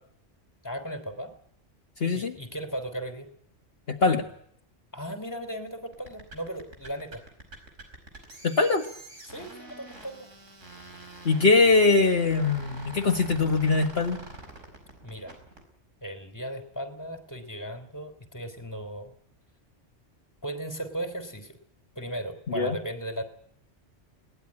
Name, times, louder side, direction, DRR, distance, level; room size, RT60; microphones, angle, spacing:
voice 1, 0.6-1.3 2.1-3.3 4.9-7.2 9.2-10.3 15.0-15.4 16.0-19.1 20.4-21.6 21.9-23.2, right 1 dB, 15° left, 8 dB, 3.1 m, -36 dB
voice 2, 2.0-2.3 3.9-4.3 8.4-8.9 11.2-14.2 22.5-22.8, left 3 dB, 55° left, 3 dB, 1.6 m, -22 dB
sound 1, 5.9-15.6, right 2 dB, 90° right, 5.3 m, -45 dB
21.5 x 18.5 x 9.8 m, 0.67 s
omnidirectional pair, 1.2 m